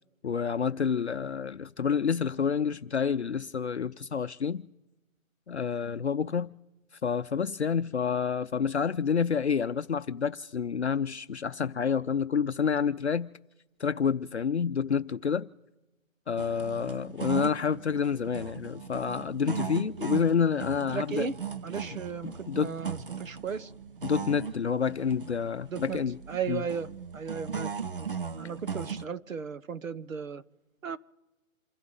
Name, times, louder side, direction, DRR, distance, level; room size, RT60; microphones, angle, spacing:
voice 1, 0.2-4.7 5.5-6.5 7.0-13.3 13.8-15.5 16.3-21.3 21.9-22.7 24.0-26.2 26.5-26.6, left 6 dB, 55° left, 0.6 m, -28 dB
sound 1, 16.4-29.0, right 6 dB, 40° right, 0.5 m, -38 dB
voice 2, 20.9-21.3 21.6-23.7 25.7-26.0 26.3-27.7 28.4-30.4 30.8-31.0, right 6 dB, 75° right, 1.2 m, -35 dB
28.5 x 12.0 x 3.8 m
hypercardioid pair, 175°, 40 cm